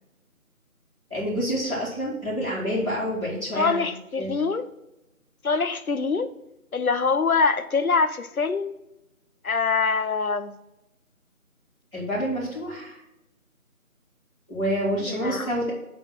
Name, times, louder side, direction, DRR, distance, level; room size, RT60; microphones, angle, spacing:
voice 1, 1.1-3.9 4.2-4.4 11.9-13.0 14.5-15.7, equal, ahead, -24 dB, 2.0 m, -28 dB
voice 2, 3.5-4.6 5.4-6.3 6.7-8.7 9.4-10.6 15.0-15.5, left 4 dB, 75° left, 10 dB, 0.9 m, -24 dB
8.9 x 3.6 x 6.1 m, 0.90 s
figure-of-eight pair, 175°, 43 cm